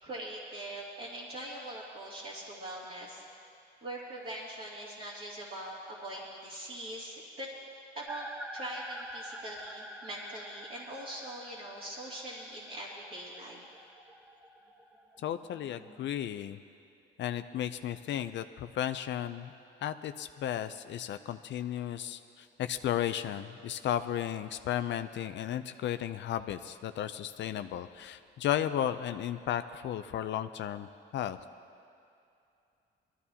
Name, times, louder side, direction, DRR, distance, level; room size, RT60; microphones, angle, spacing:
voice 1, 0.0-3.3 3.8-7.5 7.9-8.3 8.5-13.6, right 1 dB, 50° right, -8 dB, 2.6 m, -42 dB
sound 1, 8.1-16.1, equal, 5° right, 0.9 m, -48 dB
voice 2, 15.2-16.6 17.2-19.5 19.8-31.4, left 10 dB, 65° left, 10 dB, 0.5 m, -34 dB
21.0 x 14.0 x 2.8 m, 2.6 s
cardioid pair, 90°, 20 cm